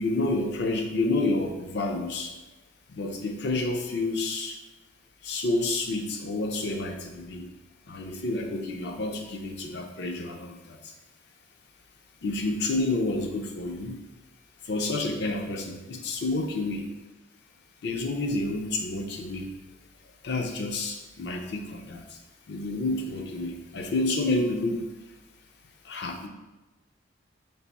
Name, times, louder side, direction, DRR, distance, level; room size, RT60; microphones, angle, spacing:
voice 1, 0.0-2.3 2.9-4.6 5.2-7.5 7.9-10.9 12.2-14.0 14.6-16.9 17.8-19.5 20.2-22.2 22.5-24.9 25.8-26.3, left 2 dB, 55° left, 3 dB, 0.5 m, -29 dB
3.3 x 2.5 x 4.1 m, 1.1 s
head